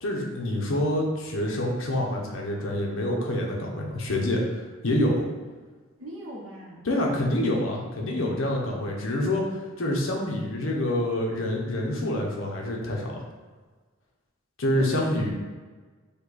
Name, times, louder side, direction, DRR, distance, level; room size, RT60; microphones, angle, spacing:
voice 1, 0.0-5.3 6.8-9.4 9.8-13.2 14.6-15.3, left 1 dB, 75° left, 0 dB, 0.8 m, -27 dB
voice 2, 6.0-6.9 14.8-15.3, right 1 dB, 75° right, -3 dB, 0.9 m, -39 dB
5.3 x 2.3 x 4.0 m, 1.4 s
head